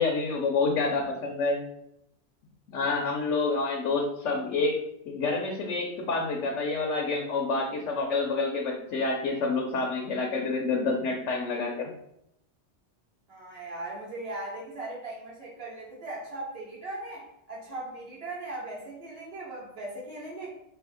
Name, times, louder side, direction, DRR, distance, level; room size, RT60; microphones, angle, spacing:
voice 1, 0.0-1.6 2.7-4.8 5.1-11.9, left 3 dB, 90° left, 0 dB, 1.1 m, -28 dB
voice 2, 13.3-20.5, right 2 dB, 30° right, -5 dB, 1.5 m, -39 dB
3.5 x 3.1 x 4.8 m, 0.77 s
omnidirectional pair, 1.2 m